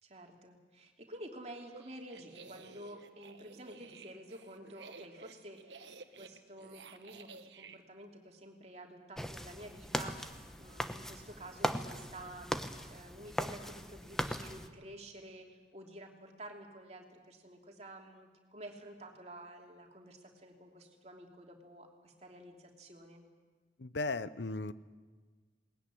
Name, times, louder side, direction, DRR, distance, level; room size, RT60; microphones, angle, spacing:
voice 1, 0.0-23.2, right 1 dB, 35° right, 2 dB, 3.0 m, -50 dB
sound 1, 1.6-7.8, right 4 dB, 75° right, 1.4 m, -53 dB
sound 2, 9.2-14.7, equal, 5° left, 0.9 m, -39 dB
voice 2, 23.8-24.7, left 3 dB, 75° left, 15 dB, 0.8 m, -36 dB
20.5 x 19.5 x 9.9 m, 1.4 s
head